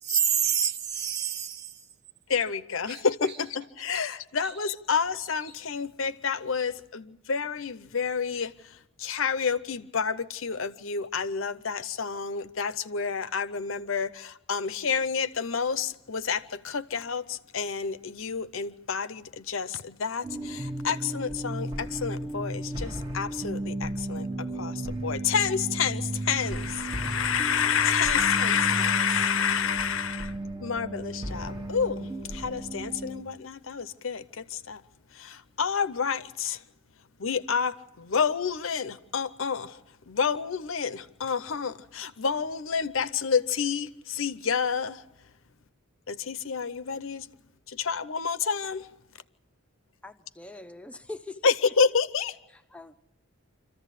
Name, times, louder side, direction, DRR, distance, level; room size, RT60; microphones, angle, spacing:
voice 1, 0.0-1.9 2.9-3.4 4.1-4.2 4.4-4.6, right 9 dB, 50° right, 0.8 m, -29 dB
voice 2, 2.3-34.8 35.1-36.7 37.2-45.0 46.1-47.3 47.7-48.9 51.4-52.4, left 6 dB, 65° left, 0.8 m, -29 dB
sound 1, 20.2-33.2, right 1 dB, 20° right, 1.2 m, -34 dB
voice 3, 50.0-51.5 52.5-52.9, left 2 dB, 5° left, 0.7 m, -43 dB
26.0 x 14.5 x 8.2 m
head